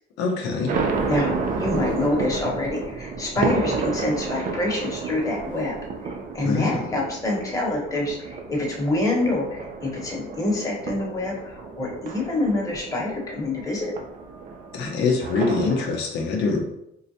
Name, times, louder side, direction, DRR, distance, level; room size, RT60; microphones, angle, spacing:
voice 1, 0.2-0.8 6.4-6.8 14.7-16.6, left 4 dB, 85° left, 1 dB, 0.6 m, -24 dB
sound 1, 0.7-15.9, right 4 dB, 55° right, 0.5 m, -31 dB
voice 2, 1.1-5.7 6.0-13.9, left 2 dB, 20° left, -3 dB, 1.0 m, -26 dB
3.7 x 2.1 x 2.7 m, 0.78 s
cardioid pair, 110°, 17 cm